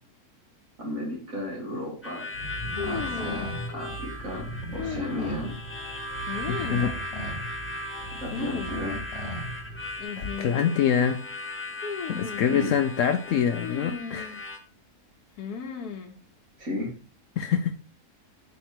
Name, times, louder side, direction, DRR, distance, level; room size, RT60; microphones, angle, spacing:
voice 1, 0.8-2.3 2.9-4.5 4.7-5.6 8.2-9.0 12.5-12.7 16.6-16.9, left 1 dB, 55° right, -3 dB, 2.9 m, -34 dB
Harmonica, 2.0-14.6, left 1 dB, 15° left, 0.4 m, -37 dB
sound 1, 2.3-10.0, right 1 dB, 45° left, 1.4 m, -38 dB
sound 2, 2.8-3.5 4.8-5.6 6.3-7.0 8.3-8.7 9.0-9.1 10.0-10.7 11.8-12.6 13.6-14.4 15.4-16.1, left 6 dB, 85° left, 1.4 m, -35 dB
voice 2, 6.5-6.9 10.2-11.2 12.1-14.4 17.4-17.7, left 8 dB, 70° left, 7 dB, 0.8 m, -25 dB
5.8 x 4.6 x 4.4 m, 0.40 s
omnidirectional pair, 1.6 m